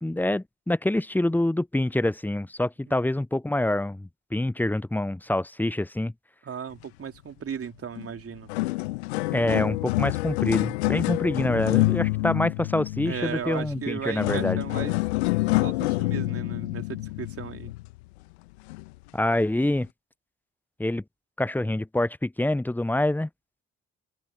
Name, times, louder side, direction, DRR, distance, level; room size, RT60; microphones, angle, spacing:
voice 1, 0.0-6.1 9.3-14.6 19.1-19.9 20.8-21.0 21.4-23.3, left 1 dB, 5° left, 0.7 m, -26 dB
voice 2, 6.4-8.5 12.2-12.3 13.0-15.0 15.4-17.7, right 7 dB, 45° right, 3.5 m, -36 dB
sound 1, 8.0-8.1 8.4-18.1 18.7-18.9 19.6-19.7, left 22 dB, 75° left, 1.8 m, -27 dB
open air
figure-of-eight pair, 40°, 32 cm